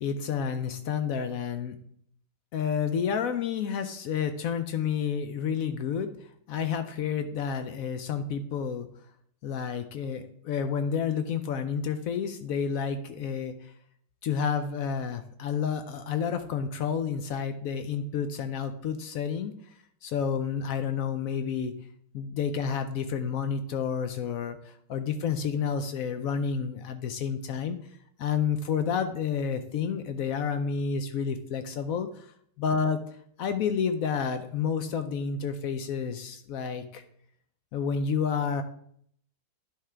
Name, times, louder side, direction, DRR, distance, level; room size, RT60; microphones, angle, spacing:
voice 1, 0.0-1.7 2.5-8.9 9.4-13.7 14.2-19.5 20.0-21.7 22.1-27.8 28.2-32.3 32.6-33.0 33.4-37.0 37.7-38.6, left 7 dB, 75° left, 9 dB, 0.8 m, -30 dB
10.5 x 3.7 x 4.4 m, 0.66 s
omnidirectional pair, 2.0 m